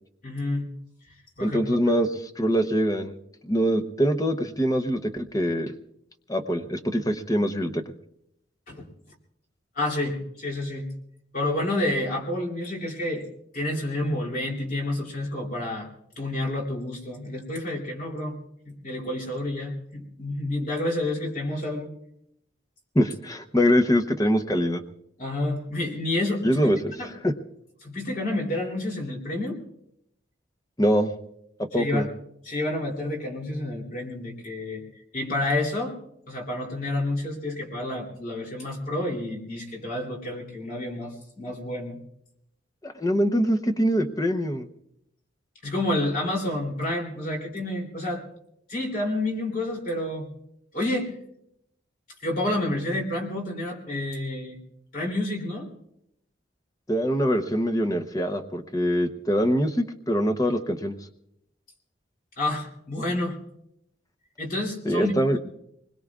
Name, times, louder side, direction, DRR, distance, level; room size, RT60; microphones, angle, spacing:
voice 1, 0.2-0.7 1.4-1.8 8.7-8.9 9.7-10.9 11.3-13.2 13.5-15.9 16.2-18.4 18.6-21.9 25.2-27.1 27.8-29.6 31.7-32.1 32.4-34.8 35.1-36.0 36.3-42.0 45.6-48.2 48.7-50.3 50.7-51.1 52.2-54.6 54.9-55.7 62.4-63.4 64.4-65.4, left 1 dB, 45° left, -1 dB, 3.1 m, -29 dB
voice 2, 1.4-2.1 2.4-3.2 3.4-5.7 6.3-7.8 22.9-24.8 26.4-26.8 27.2-27.3 30.8-31.1 31.6-32.1 42.8-44.7 56.9-60.9 64.9-65.4, equal, 20° left, 5 dB, 0.8 m, -23 dB
25.5 x 21.0 x 2.4 m, 0.77 s
head